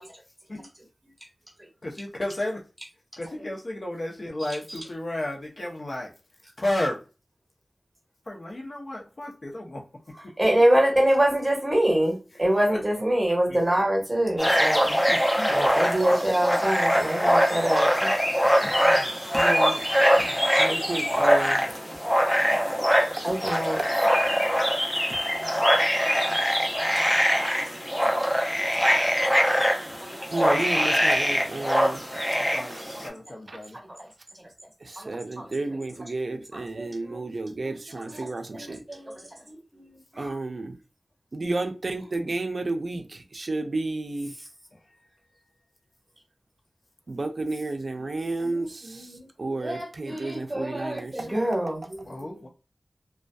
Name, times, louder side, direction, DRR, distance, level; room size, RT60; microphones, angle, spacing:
voice 1, 1.8-2.6 3.2-6.1 6.6-7.0 8.3-9.8 12.3-12.8 13.5-13.6 15.1-15.8 18.6-19.1 30.4-31.1 32.5-33.8 52.1-52.5, left 1 dB, 60° left, 0.7 m, -33 dB
voice 2, 10.4-15.0 15.5-18.1 20.4-20.6 22.3-22.8 23.2-23.9 24.3-24.4 26.0-26.4 27.5-27.8 28.1-28.4 30.7-30.8 33.0-33.2 35.4-35.9 36.3-37.2 37.6-39.2 39.5-40.3 48.0-49.3 49.6-52.4, right 1 dB, 20° right, 1.3 m, -26 dB
sound 1, 14.4-33.1, equal, 15° left, 0.7 m, -23 dB
voice 3, 19.3-19.8 20.2-21.6 23.8-23.9 30.3-32.0 33.5-33.6 35.1-38.8 40.2-40.7 41.3-43.0 43.3-44.3 47.1-48.8 49.4-51.1, right 2 dB, 65° right, 0.4 m, -31 dB
2.6 x 2.3 x 2.2 m
wide cardioid pair, 70°, 0 cm